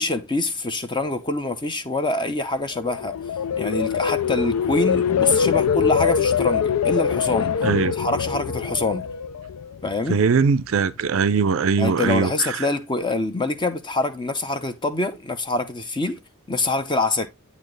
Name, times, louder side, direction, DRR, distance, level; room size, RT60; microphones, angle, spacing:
voice 1, 0.0-3.1 3.6-7.5 7.9-9.1 9.8-10.3 11.8-16.2 16.5-17.3, left 2 dB, 20° left, 0.7 m, -25 dB
sound 1, 2.7-9.9 10.3-10.7, left 7 dB, 85° left, 0.4 m, -23 dB
voice 2, 7.6-7.9 10.1-12.6, right 5 dB, 60° right, 0.4 m, -20 dB
8.6 x 4.3 x 3.1 m
head